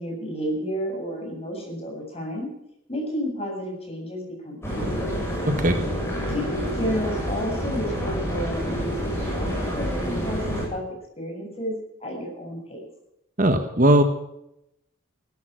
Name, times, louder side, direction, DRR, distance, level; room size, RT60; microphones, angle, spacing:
voice 1, 0.0-2.5 2.9-5.2 6.3-10.8 11.2-11.7 12.0-12.9, equal, 30° left, 0 dB, 7.9 m, -31 dB
sound 1, 4.6-10.6, equal, 15° left, 7.9 m, -28 dB
voice 2, 13.4-14.0, right 1 dB, 40° right, 8 dB, 1.5 m, -18 dB
17.0 x 13.5 x 6.3 m, 0.82 s
head